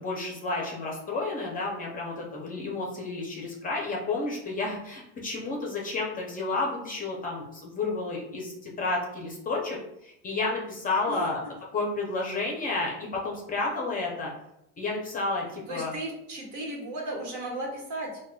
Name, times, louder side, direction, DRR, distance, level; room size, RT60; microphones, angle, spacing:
voice 1, 0.0-9.8 10.0-11.4 11.7-14.3 14.8-15.9, left 3 dB, 25° left, -2 dB, 0.6 m, -31 dB
voice 2, 15.7-18.2, right 1 dB, 60° right, -2 dB, 1.2 m, -35 dB
4.6 x 2.2 x 2.2 m, 0.83 s
cardioid pair, 160°, 32 cm